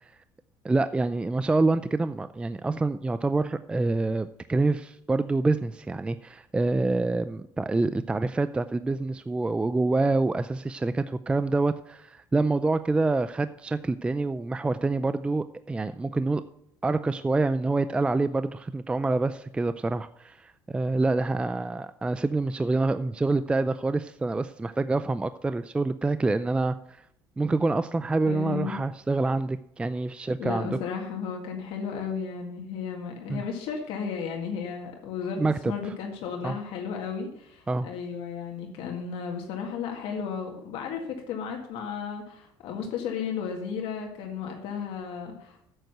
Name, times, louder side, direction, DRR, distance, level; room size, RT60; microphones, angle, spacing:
voice 1, 0.6-16.4 16.8-27.0 27.4-30.7 33.3-33.4 35.4-35.9 36.4-36.6 37.7-37.9, right 3 dB, 10° right, 13 dB, 0.4 m, -26 dB
voice 2, 28.3-28.8 30.4-45.6, left 6 dB, 75° left, 1 dB, 1.9 m, -34 dB
9.1 x 7.9 x 6.6 m, 0.73 s
cardioid pair, 120°, 10 cm